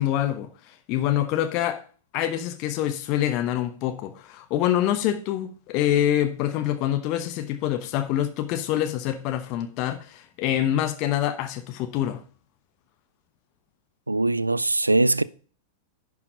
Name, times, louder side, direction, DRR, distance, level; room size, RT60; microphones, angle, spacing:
voice 1, 0.0-1.8 2.1-12.2, left 11 dB, 40° left, 0.9 m, -26 dB
voice 2, 14.1-15.2, right 2 dB, 85° right, 0.3 m, -21 dB
11.0 x 4.8 x 5.0 m
figure-of-eight pair, 95°, 0 cm